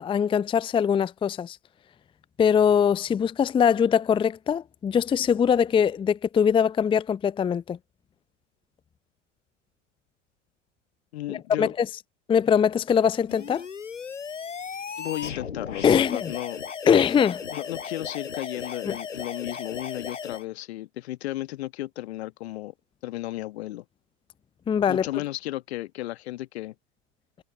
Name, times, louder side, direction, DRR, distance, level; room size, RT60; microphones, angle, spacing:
voice 1, 0.0-1.6 2.4-7.8 11.3-11.9 12.3-13.6 15.8-16.3 16.9-17.4 18.9-19.0 24.7-25.1, left 7 dB, 15° left, 0.7 m, -22 dB
voice 2, 11.1-11.7 15.0-16.6 17.5-22.7 23.0-23.8 24.9-26.7, left 16 dB, 55° left, 1.4 m, -34 dB
sound 1, 13.3-20.4, left 6 dB, 75° left, 7.3 m, -36 dB
figure-of-eight pair, 85°, 37 cm